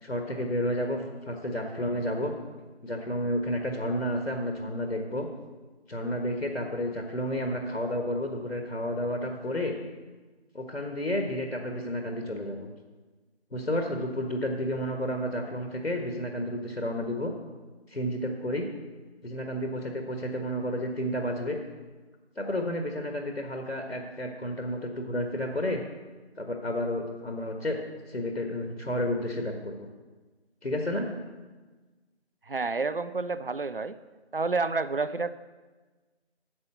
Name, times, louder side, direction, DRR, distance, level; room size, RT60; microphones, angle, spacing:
voice 1, 0.0-2.3 2.8-5.3 5.9-9.7 10.5-12.7 13.5-17.3 17.9-18.7 19.2-21.6 22.4-25.8 26.4-27.8 28.1-29.9 30.6-31.1, left 1 dB, 85° left, 3 dB, 1.6 m, -31 dB
voice 2, 32.5-34.0 34.3-35.3, right 4 dB, 55° right, 14 dB, 0.5 m, -29 dB
9.6 x 6.9 x 7.9 m, 1.3 s
figure-of-eight pair, 175°, 33 cm